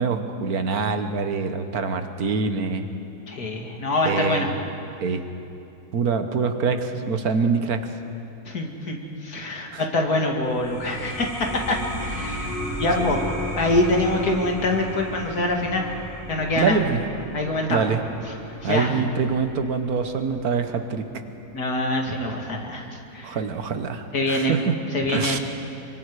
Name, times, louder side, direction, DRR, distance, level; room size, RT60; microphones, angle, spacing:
voice 1, 0.0-2.9 4.0-4.6 5.0-5.2 5.9-7.8 9.7-9.8 13.0-13.1 16.6-17.0 17.7-18.0 18.6-21.0 23.2-24.7 25.1-25.4, right 5 dB, 70° right, 8 dB, 1.6 m, -24 dB
voice 2, 3.3-4.5 8.5-13.3 13.6-15.9 16.3-16.8 17.3-17.9 18.6-19.0 21.5-23.4 24.1-24.6 24.9-25.4, left 2 dB, 75° left, 1 dB, 2.8 m, -25 dB
sound 1, 10.4-21.6, left 1 dB, 10° right, 3.5 m, -35 dB
26.0 x 24.0 x 4.9 m, 2.7 s
omnidirectional pair, 1.7 m